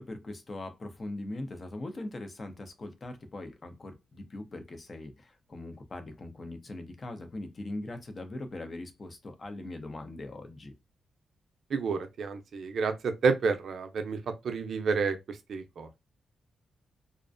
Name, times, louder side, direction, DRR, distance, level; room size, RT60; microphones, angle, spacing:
voice 1, 0.0-10.7, left 2 dB, 35° left, 0.6 m, -41 dB
voice 2, 11.7-14.2 14.4-16.0, right 5 dB, 65° right, 0.5 m, -30 dB
2.4 x 2.1 x 2.5 m
cardioid pair, 105°, 0 cm